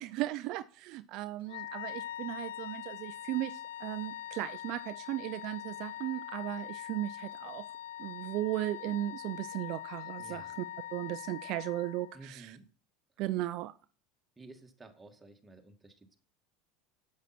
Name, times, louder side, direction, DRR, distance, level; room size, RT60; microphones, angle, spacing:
voice 1, 0.0-7.7 8.0-10.6 10.9-12.5 13.2-13.7, right 15 dB, 60° right, 13 dB, 0.4 m, -36 dB
Wind instrument woodwind instrument, 1.5-12.3, left 12 dB, 85° left, 0.3 m, -43 dB
voice 2, 10.2-10.6 12.1-12.6 14.4-16.2, right 2 dB, 15° right, 4 dB, 2.0 m, -53 dB
8.0 x 7.8 x 4.3 m, 0.37 s
hypercardioid pair, 95°, 0 cm